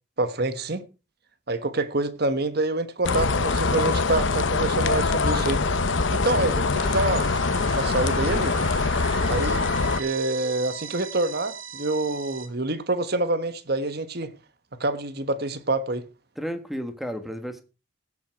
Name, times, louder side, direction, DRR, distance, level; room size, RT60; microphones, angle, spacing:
voice 1, 0.2-0.8 1.5-5.8 6.1-7.3 7.7-8.6 9.3-9.7 10.0-14.3 14.8-16.0, right 2 dB, 55° right, 1.3 m, -26 dB
sound 1, 3.0-10.0, left 3 dB, 75° left, 1.0 m, -23 dB
sound 2, 6.8-12.5, right 5 dB, 85° right, 2.3 m, -37 dB
voice 2, 16.4-17.6, equal, ahead, 1.5 m, -32 dB
16.5 x 7.4 x 4.6 m
head